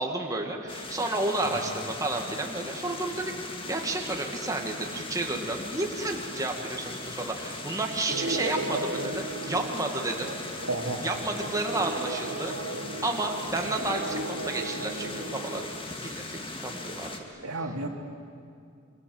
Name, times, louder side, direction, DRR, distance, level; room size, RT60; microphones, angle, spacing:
voice 1, 0.0-10.3 11.0-12.5 13.0-17.1, right 2 dB, 15° right, 1 dB, 2.1 m, -31 dB
sound 1, 0.7-17.2, left 2 dB, 25° left, 2.2 m, -39 dB
sound 2, 8.1-15.6, right 2 dB, 60° right, 1.6 m, -36 dB
voice 2, 10.7-11.0 17.4-17.9, right 2 dB, 85° right, 2 dB, 3.1 m, -32 dB
27.5 x 25.0 x 8.0 m, 2.4 s
head